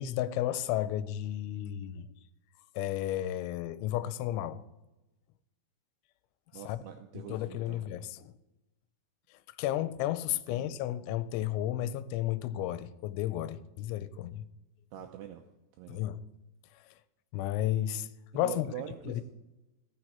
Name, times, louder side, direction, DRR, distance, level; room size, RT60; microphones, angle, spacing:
voice 1, 0.0-2.1 2.8-4.6 6.7-6.8 7.2-8.3 9.6-14.5 15.9-16.2 17.3-18.1 18.3-18.7 19.1-19.2, left 12 dB, 85° left, 2.9 m, -33 dB
voice 2, 6.5-7.8 10.3-10.8 14.9-15.4 15.8-16.0 18.3-19.2, right 11 dB, 85° right, 2.3 m, -44 dB
16.5 x 6.3 x 4.3 m
omnidirectional pair, 5.4 m